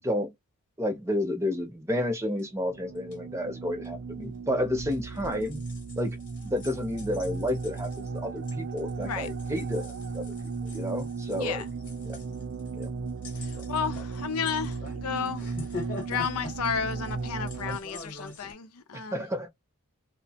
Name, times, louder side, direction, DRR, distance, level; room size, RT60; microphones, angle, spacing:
voice 1, 0.0-0.3 0.8-5.6 6.0-6.2 6.4-10.3 10.6-11.6 12.0-12.2 12.7-12.9 18.9-19.5, left 1 dB, 15° right, 0.7 m, -31 dB
sound 1, 2.4-2.5 2.9-3.2 3.8-3.9 4.7-18.5, left 2 dB, 40° left, 1.0 m, -44 dB
sound 2, 2.5-17.8, right 4 dB, 65° right, 0.4 m, -36 dB
voice 2, 11.4-11.7 13.4-15.5 16.1-19.2, left 6 dB, 85° left, 0.5 m, -32 dB
3.0 x 2.0 x 2.8 m
head